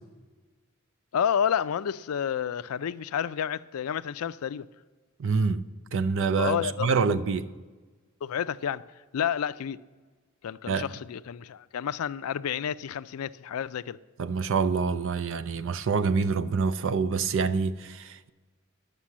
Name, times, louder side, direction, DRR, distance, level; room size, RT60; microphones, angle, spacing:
voice 1, 1.1-4.7 6.4-6.9 8.2-8.8 9.1-9.8 10.4-14.0, left 8 dB, 85° left, 0.4 m, -30 dB
voice 2, 5.2-5.6 5.9-7.5 10.7-10.9 14.2-18.3, right 5 dB, 65° right, 0.5 m, -26 dB
11.5 x 6.8 x 7.3 m
head